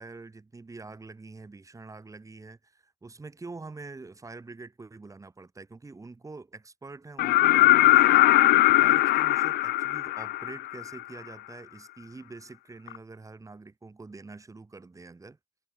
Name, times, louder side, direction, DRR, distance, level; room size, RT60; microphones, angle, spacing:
voice 1, 0.0-8.4 8.8-15.4, right 3 dB, 20° right, 7.1 m, -45 dB
sound 1, 7.2-11.0 12.9-13.0, left 17 dB, 65° left, 0.4 m, -20 dB
cardioid pair, 110°, 17 cm